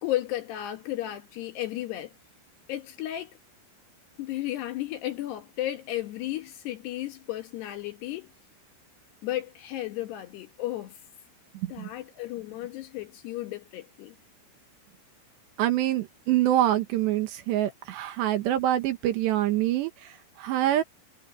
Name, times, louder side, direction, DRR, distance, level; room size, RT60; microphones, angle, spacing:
voice 1, 0.0-2.1 2.7-3.4 4.2-8.3 9.2-10.9 11.7-14.1, left 14 dB, 65° left, 3.0 m, -34 dB
voice 2, 15.6-19.9 20.4-20.8, right 13 dB, 70° right, 3.1 m, -25 dB
omnidirectional pair, 5.7 m